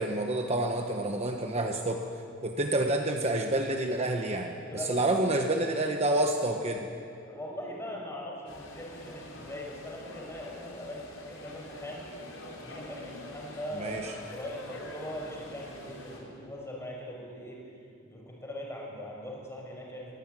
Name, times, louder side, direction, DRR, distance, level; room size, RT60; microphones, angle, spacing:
voice 1, 0.0-2.0 2.4-6.9 13.7-14.1, right 1 dB, 30° right, 3 dB, 1.2 m, -28 dB
voice 2, 4.6-5.3 7.2-12.1 12.6-17.6 18.0-20.2, equal, 15° left, -2 dB, 5.8 m, -41 dB
sound 1, 8.5-16.2, left 1 dB, 85° left, 4.7 m, -46 dB
22.5 x 15.5 x 9.2 m, 2.5 s
head